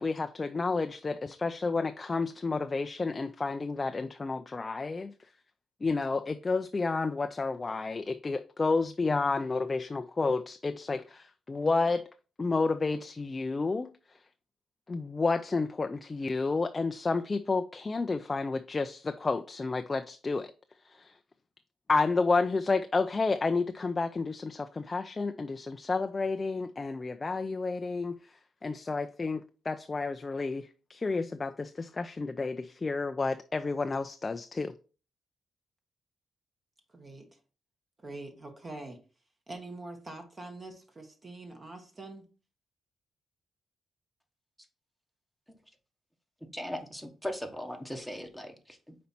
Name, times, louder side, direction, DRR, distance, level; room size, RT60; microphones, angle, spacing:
voice 1, 0.0-5.1 5.8-12.0 12.4-13.9 14.9-20.5 20.9-21.2 21.9-34.7, left 3 dB, 25° left, 0.3 m, -30 dB
voice 2, 36.9-37.4 38.0-39.0 39.5-42.3, right 2 dB, 30° right, 1.2 m, -44 dB
voice 3, 46.5-49.0, equal, 5° right, 1.1 m, -38 dB
5.4 x 4.2 x 4.2 m
cardioid pair, 110°, 0 cm